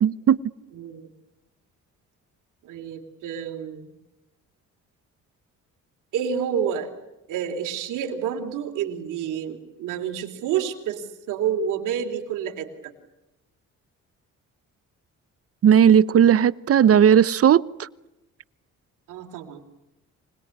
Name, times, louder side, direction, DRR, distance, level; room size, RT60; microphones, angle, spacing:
voice 1, 0.0-0.4 15.6-17.9, right 8 dB, 50° right, 19 dB, 0.9 m, -16 dB
voice 2, 0.7-1.1 2.6-3.9 6.1-6.9 7.3-12.9 19.1-19.6, right 8 dB, 90° right, 4 dB, 3.4 m, -29 dB
26.0 x 20.0 x 9.7 m, 0.99 s
cardioid pair, 90°, 30 cm